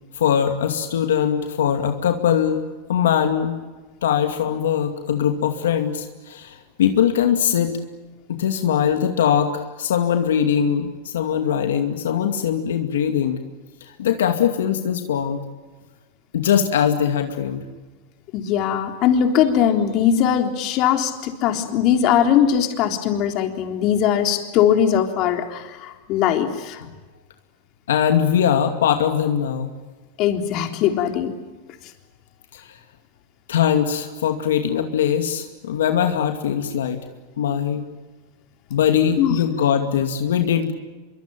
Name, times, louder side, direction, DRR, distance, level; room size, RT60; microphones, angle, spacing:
voice 1, 0.2-3.6 4.0-7.7 8.3-13.5 13.8-15.4 16.3-17.7 27.9-29.8 32.5-32.8 33.5-37.0 37.4-37.8 38.7-40.7, left 8 dB, 85° left, 5 dB, 2.4 m, -21 dB
voice 2, 18.3-26.8 30.2-31.3 39.2-39.4, left 9 dB, 50° left, 5 dB, 3.7 m, -20 dB
25.5 x 24.0 x 9.0 m, 1.3 s
hypercardioid pair, 120°, 0 cm